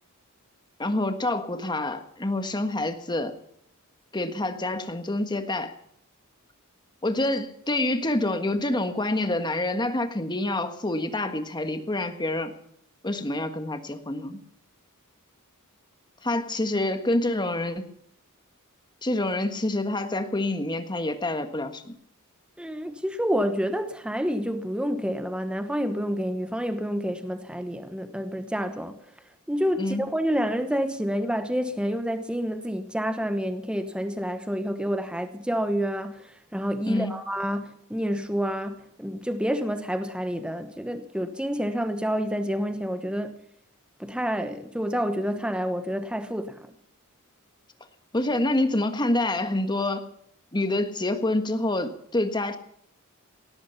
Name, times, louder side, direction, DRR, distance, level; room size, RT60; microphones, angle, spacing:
voice 1, 0.8-3.3 4.1-5.7 7.0-12.5 13.0-14.4 16.2-17.9 19.0-21.9 29.8-30.0 36.9-37.1 48.1-50.1 50.5-52.6, left 1 dB, 20° left, 1.5 m, -27 dB
voice 2, 22.6-29.0 29.5-36.3 36.5-43.4 44.0-46.7, equal, 5° right, 1.1 m, -28 dB
17.5 x 14.0 x 5.7 m
head